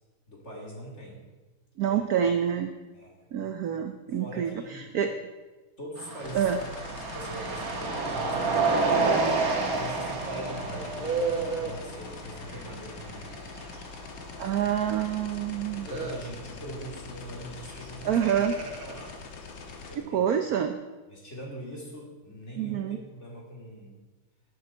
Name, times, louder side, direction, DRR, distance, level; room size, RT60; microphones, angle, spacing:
voice 1, 0.3-1.2 1.8-2.0 2.9-3.3 4.1-5.0 5.8-6.6 6.9-13.3 15.9-18.3 18.8-19.2 19.8-20.2 21.1-24.0, right 1 dB, 30° left, -2 dB, 3.1 m, -42 dB
voice 2, 1.8-2.7 3.3-5.1 6.3-6.6 14.4-15.9 18.0-18.5 20.0-20.8 22.6-23.0, right 9 dB, 65° right, 7 dB, 0.9 m, -27 dB
sound 1, 6.0-14.6 14.9-15.1 15.8-16.2 17.7-17.8 18.1-19.1, right 3 dB, 45° right, 1.8 m, -30 dB
sound 2, 6.2-20.0, left 5 dB, 65° left, 2.0 m, -43 dB
16.5 x 9.6 x 4.4 m, 1.2 s
omnidirectional pair, 2.3 m